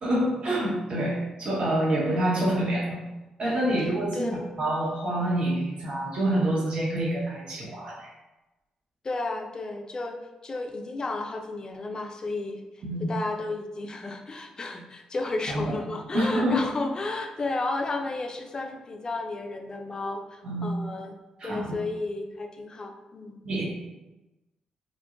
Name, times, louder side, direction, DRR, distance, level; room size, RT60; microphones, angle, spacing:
voice 1, 0.0-3.0 3.4-4.3 4.6-8.1 12.8-13.1 15.5-15.7 16.1-16.7 20.4-20.7 21.4-21.8 23.4-23.6, right 1 dB, 55° right, -6 dB, 1.1 m, -27 dB
voice 2, 3.8-4.5 9.0-10.2 10.4-12.6 13.0-21.1 21.4-23.4, left 2 dB, 35° left, 4 dB, 0.4 m, -33 dB
3.0 x 2.5 x 2.5 m, 1.0 s
cardioid pair, 75°, 2 cm